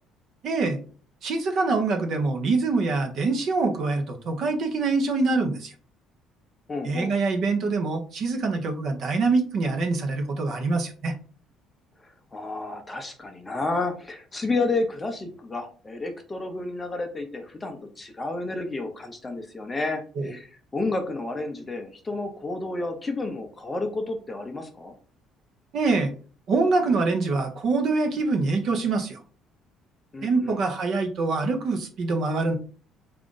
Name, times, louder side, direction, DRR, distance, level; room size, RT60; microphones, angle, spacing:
voice 1, 0.4-0.8 1.2-5.7 6.8-11.1 20.2-20.3 25.7-26.1 26.5-29.2 30.2-32.6, right 3 dB, 50° right, 5 dB, 0.7 m, -24 dB
voice 2, 6.7-7.1 12.3-24.9 30.1-30.6, left 2 dB, 15° left, 5 dB, 0.5 m, -31 dB
3.7 x 2.5 x 3.7 m, 0.40 s
cardioid pair, 150°, 0 cm